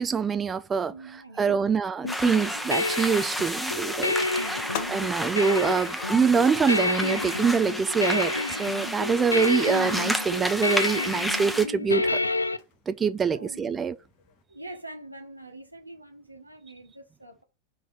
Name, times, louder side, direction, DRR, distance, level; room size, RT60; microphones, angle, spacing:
voice 1, 0.0-0.9 1.4-4.2 4.5-12.2 12.9-13.9, right 6 dB, 20° right, 0.4 m, -25 dB
voice 2, 0.9-1.7 4.6-5.1 13.3-13.8 14.5-17.4, right 2 dB, 85° right, 1.3 m, -44 dB
sound 1, 2.0-12.6, left 2 dB, 80° left, 0.4 m, -29 dB
sound 2, 2.1-11.7, equal, ahead, 0.9 m, -31 dB
sound 3, 9.1-14.4, left 8 dB, 45° left, 1.1 m, -47 dB
5.4 x 4.1 x 5.6 m
figure-of-eight pair, 90°, 0 cm